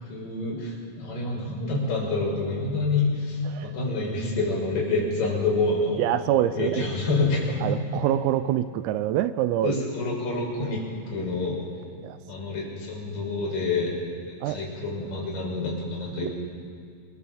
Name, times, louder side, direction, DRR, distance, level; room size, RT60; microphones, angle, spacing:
voice 1, 0.1-6.0 6.6-7.8 9.6-10.8 11.1-11.6 12.3-13.9 14.3-16.3, left 3 dB, 40° left, -3 dB, 7.6 m, -27 dB
voice 2, 6.0-6.9 7.6-9.8 12.0-12.2 14.4-14.6 15.0-15.2 16.2-16.3, right 12 dB, 85° right, 12 dB, 3.4 m, -26 dB
25.0 x 19.0 x 7.8 m, 2.3 s
omnidirectional pair, 6.0 m